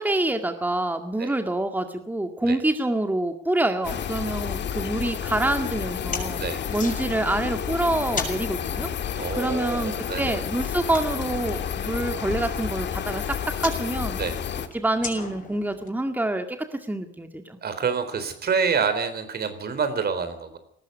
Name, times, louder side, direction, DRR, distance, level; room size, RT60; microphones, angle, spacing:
voice 1, 0.0-6.4 6.7-13.4 13.6-14.2 14.7-17.6, right 1 dB, 10° right, 6 dB, 2.0 m, -27 dB
sound 1, 3.8-14.7, left 8 dB, 60° left, 2.0 m, -30 dB
sound 2, 3.9-15.9, left 4 dB, 40° left, 6.7 m, -41 dB
voice 2, 9.2-10.4 14.2-14.4 17.6-20.6, right 5 dB, 55° right, 11 dB, 4.1 m, -27 dB
19.0 x 14.5 x 9.5 m, 0.69 s
cardioid pair, 90°, 20 cm